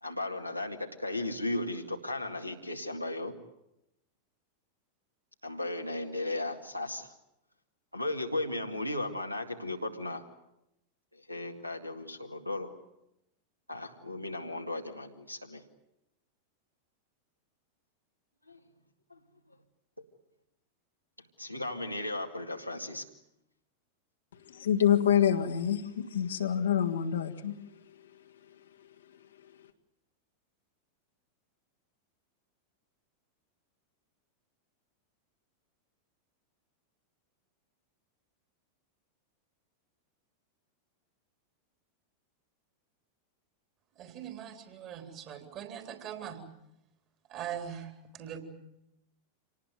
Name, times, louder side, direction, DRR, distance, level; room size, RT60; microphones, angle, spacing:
voice 1, 0.0-3.4 5.4-7.1 7.9-10.2 11.1-12.7 13.7-15.6 18.5-18.6 19.1-19.2 21.4-23.0, left 2 dB, 90° left, 2.1 m, -36 dB
voice 2, 24.5-27.6, left 9 dB, 65° left, 1.8 m, -27 dB
voice 3, 44.0-46.4 47.3-48.4, right 9 dB, 35° right, 3.9 m, -41 dB
26.5 x 19.0 x 9.3 m
figure-of-eight pair, 90°, 0 cm